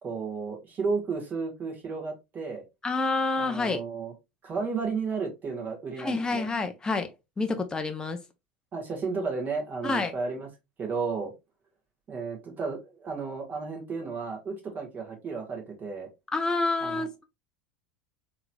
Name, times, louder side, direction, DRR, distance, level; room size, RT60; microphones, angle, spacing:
voice 1, 0.0-2.6 3.4-4.1 4.4-6.5 8.7-10.5 10.8-11.3 12.1-16.1 16.8-17.0, right 4 dB, 35° right, 1.5 m, -33 dB
voice 2, 2.8-3.8 6.0-7.1 7.4-8.2 9.8-10.1 16.3-17.3, left 3 dB, 15° left, 0.6 m, -28 dB
3.7 x 2.9 x 2.2 m
hypercardioid pair, 80°, 5 cm